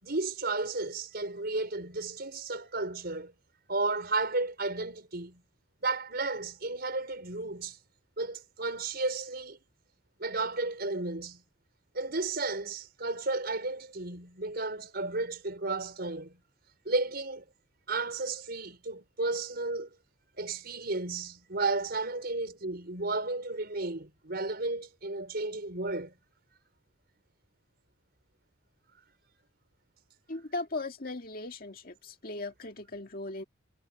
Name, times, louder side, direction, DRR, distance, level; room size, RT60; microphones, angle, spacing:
voice 1, 0.0-3.3 3.7-5.4 5.8-7.8 8.2-9.6 10.2-11.4 11.9-16.4 16.9-17.4 17.9-19.9 20.4-26.1, right 3 dB, 55° right, 5.6 m, -33 dB
voice 2, 30.3-33.4, left 2 dB, 50° left, 2.1 m, -38 dB
head